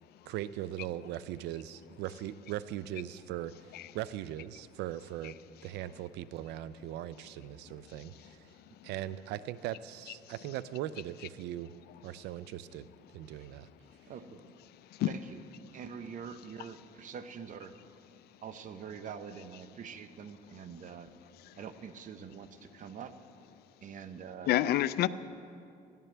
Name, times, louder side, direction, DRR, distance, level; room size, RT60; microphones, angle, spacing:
voice 1, 0.3-3.5 3.9-5.4 5.6-8.5 8.8-11.7 12.0-12.9 13.1-13.7, right 13 dB, 85° right, 0.4 m, -39 dB
voice 2, 8.0-8.3 8.8-8.9 10.2-10.3 13.4-13.5 14.8-15.1 16.6-16.7 21.5-21.6 24.5-25.1, left 14 dB, 70° left, 0.5 m, -30 dB
voice 3, 14.1-14.4 15.0-15.4 15.7-17.7 18.4-21.1 21.5-23.1 23.8-24.5, right 7 dB, 50° right, 0.8 m, -45 dB
19.5 x 14.5 x 3.4 m
cardioid pair, 110°, 17 cm